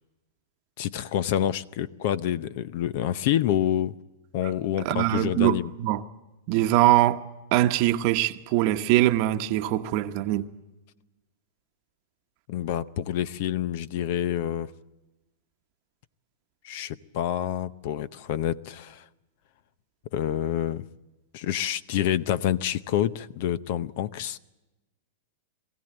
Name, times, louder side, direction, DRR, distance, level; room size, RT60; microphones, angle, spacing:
voice 1, 0.8-4.0 4.3-5.7 12.5-14.7 16.6-19.0 20.1-20.8 21.3-24.4, left 11 dB, 55° left, 0.7 m, -27 dB
voice 2, 4.8-6.0 6.5-10.5, right 15 dB, 50° right, 1.0 m, -23 dB
22.5 x 15.5 x 9.0 m
hypercardioid pair, 125°, 0 cm